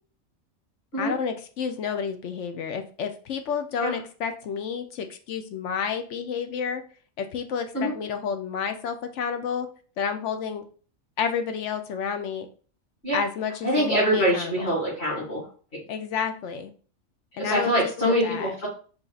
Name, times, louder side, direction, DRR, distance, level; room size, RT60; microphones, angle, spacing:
voice 1, 1.0-6.8 7.2-9.7 10.0-10.6 11.2-12.5 13.1-14.7 15.9-16.7 17.4-18.5, left 6 dB, 70° left, 7 dB, 0.9 m, -30 dB
voice 2, 13.6-15.5 17.4-18.7, equal, 50° left, -8 dB, 2.6 m, -24 dB
4.8 x 2.8 x 3.9 m, 0.40 s
omnidirectional pair, 1.4 m